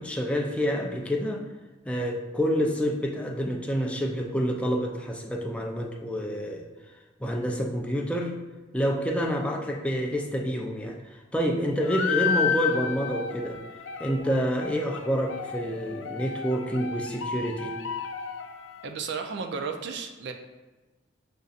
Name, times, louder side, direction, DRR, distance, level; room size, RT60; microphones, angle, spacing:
voice 1, 0.0-1.4 1.9-6.6 7.2-8.3 8.7-13.6 14.0-17.8, equal, 5° left, 1 dB, 0.4 m, -28 dB
sound 1, 11.8-18.9, left 6 dB, 80° left, 0.3 m, -32 dB
voice 2, 18.8-20.3, right 5 dB, 65° right, 5 dB, 0.5 m, -33 dB
6.5 x 2.6 x 2.4 m, 1.2 s
head